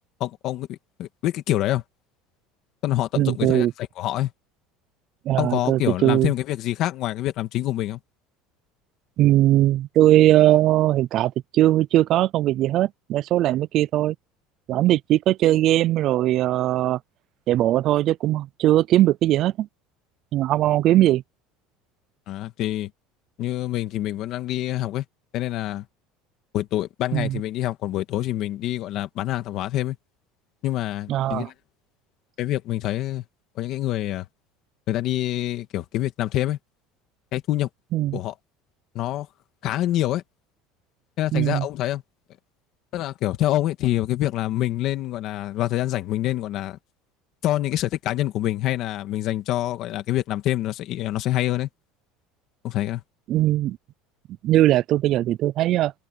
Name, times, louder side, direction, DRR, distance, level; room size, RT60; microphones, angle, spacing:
voice 1, 0.0-1.8 2.8-4.3 5.4-8.0 22.3-22.9 23.4-25.0 25.3-25.9 26.5-30.0 30.6-31.5 32.4-33.2 33.6-34.3 34.9-36.6 37.3-37.7 38.1-38.4 38.9-39.3 39.6-40.2 41.2-42.0 42.9-46.8 47.4-51.7 52.6-53.0, left 14 dB, 40° left, 1.9 m, -26 dB
voice 2, 3.2-3.7 5.3-6.3 9.2-14.1 14.7-17.0 17.5-19.7 20.3-21.2 27.1-27.4 31.1-31.5 37.9-38.2 41.3-41.7 53.3-53.8 54.4-55.9, right 14 dB, 40° right, 0.4 m, -20 dB
cardioid pair, 170°, 0 cm